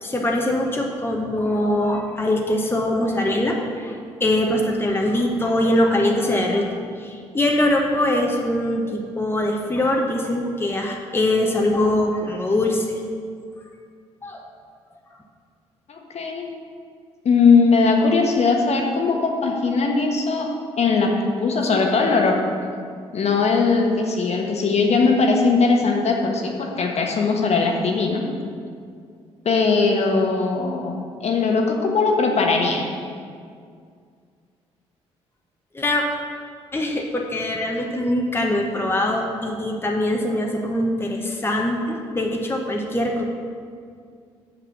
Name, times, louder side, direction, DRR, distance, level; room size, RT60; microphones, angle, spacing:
voice 1, 0.0-6.7 7.0-13.0 14.2-14.5 35.7-36.0 36.7-43.2, left 1 dB, 15° left, 1 dB, 1.1 m, -22 dB
voice 2, 15.9-16.5 17.2-20.5 20.8-22.4 23.1-28.2 29.4-30.9 31.2-33.0, left 4 dB, 45° left, 1 dB, 1.2 m, -19 dB
6.7 x 5.8 x 6.8 m, 2.2 s
figure-of-eight pair, 45°, 15 cm